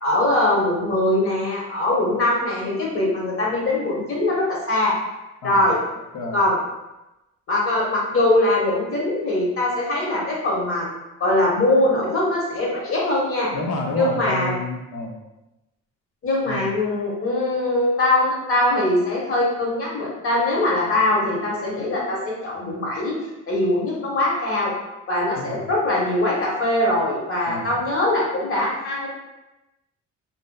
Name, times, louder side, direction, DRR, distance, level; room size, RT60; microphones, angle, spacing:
voice 1, 0.0-4.9 5.4-5.8 6.3-6.6 7.5-10.9 11.2-13.5 13.9-14.5 16.2-23.1 23.5-24.7 25.1-29.1, left 1 dB, 45° left, -4 dB, 0.9 m, -22 dB
voice 2, 5.4-6.4 13.5-15.2 16.5-16.7 25.4-25.7 27.5-27.8, left 2 dB, 85° left, 2 dB, 0.5 m, -30 dB
2.6 x 2.1 x 2.2 m, 0.97 s
cardioid pair, 90°, 30 cm